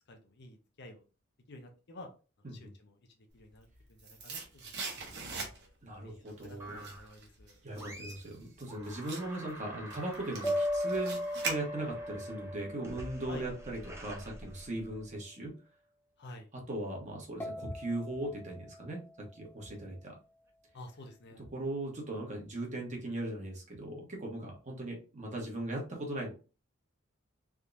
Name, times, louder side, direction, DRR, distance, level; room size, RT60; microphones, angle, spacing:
voice 1, 0.1-1.0 1.5-2.1 2.4-4.8 5.3-5.7 6.0-7.6 13.3-13.5 16.2-16.5 20.7-21.5, left 1 dB, 55° left, 4 dB, 0.7 m, -51 dB
sound 1, 3.5-5.9 6.3-12.1 12.4-12.5, right 4 dB, 55° right, 1.1 m, -42 dB
voice 2, 5.8-6.9 7.6-11.2 11.4-15.5 16.7-19.0 19.3-20.2 21.5-26.3, right 1 dB, 35° right, 0 dB, 1.2 m, -38 dB
sound 2, 6.6-7.2 7.7-8.4 8.7-15.1, equal, 15° right, 0.7 m, -48 dB
sound 3, 10.4-14.0 17.4-20.4, left 1 dB, 10° left, 1.0 m, -38 dB
3.5 x 2.9 x 2.5 m, 0.33 s
head